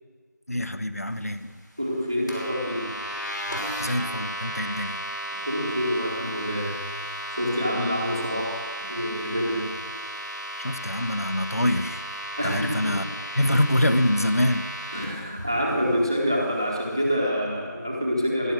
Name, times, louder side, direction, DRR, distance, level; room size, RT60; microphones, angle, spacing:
voice 1, 0.5-1.6 3.8-5.0 10.6-12.0 12.4-13.1 13.4-14.7, left 1 dB, 50° left, 10 dB, 1.0 m, -25 dB
voice 2, 1.8-2.9 5.4-6.8 7.3-9.7 12.4-13.0 14.9-18.5, equal, 10° right, -2 dB, 1.3 m, -27 dB
sound 1, 2.3-15.0, equal, 70° left, 6.3 m, -34 dB
17.0 x 12.5 x 6.2 m, 1.5 s
figure-of-eight pair, 180°, 10 cm